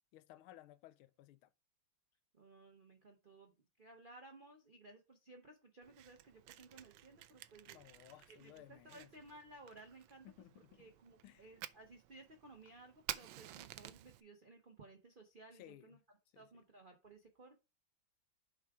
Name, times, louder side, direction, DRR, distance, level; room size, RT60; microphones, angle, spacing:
voice 1, 0.1-1.5 7.7-9.1 10.2-10.9 11.2-11.5 15.5-16.0 16.3-16.6, left 14 dB, 80° left, 1.4 m, -59 dB
voice 2, 2.3-3.5 3.8-7.8 8.4-10.3 10.8-16.0 16.4-17.6, right 2 dB, 60° right, 0.5 m, -58 dB
Fire, 5.8-14.2, right 13 dB, 75° right, 1.0 m, -52 dB
7.2 x 4.8 x 4.7 m
omnidirectional pair, 2.3 m